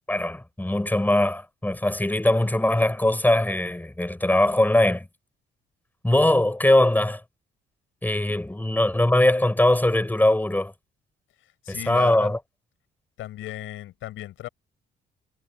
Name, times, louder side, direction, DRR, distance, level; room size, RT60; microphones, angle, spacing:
voice 1, 0.1-5.1 6.0-7.2 8.0-10.7 11.7-12.4, left 1 dB, 10° left, 7.3 m, -21 dB
voice 2, 11.6-12.3 13.2-14.5, left 14 dB, 85° left, 5.8 m, -35 dB
cardioid pair, 90°, 20 cm